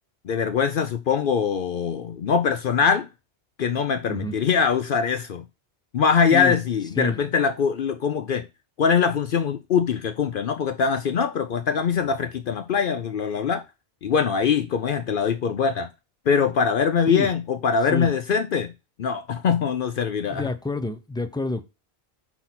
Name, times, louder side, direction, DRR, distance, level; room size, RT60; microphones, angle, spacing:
voice 1, 0.2-3.1 3.6-5.4 5.9-8.4 8.8-13.6 14.0-15.9 16.3-18.7 19.0-20.5, left 6 dB, 60° left, 0.7 m, -23 dB
voice 2, 20.3-21.6, left 2 dB, 5° left, 0.3 m, -28 dB
5.8 x 4.1 x 5.8 m
omnidirectional pair, 1.1 m